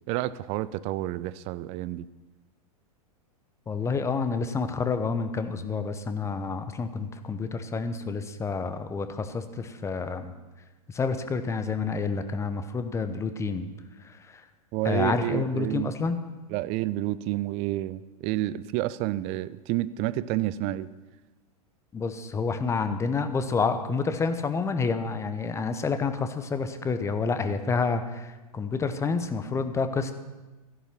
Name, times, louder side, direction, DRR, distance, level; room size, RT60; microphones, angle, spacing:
voice 1, 0.1-2.0 14.7-15.9 16.5-20.9, right 15 dB, 35° right, 17 dB, 0.5 m, -29 dB
voice 2, 3.7-10.3 10.9-13.7 14.0-14.4 14.8-16.2 21.9-30.1, left 4 dB, 15° left, 9 dB, 0.9 m, -29 dB
13.5 x 11.0 x 5.9 m, 1.1 s
figure-of-eight pair, 95°, 19 cm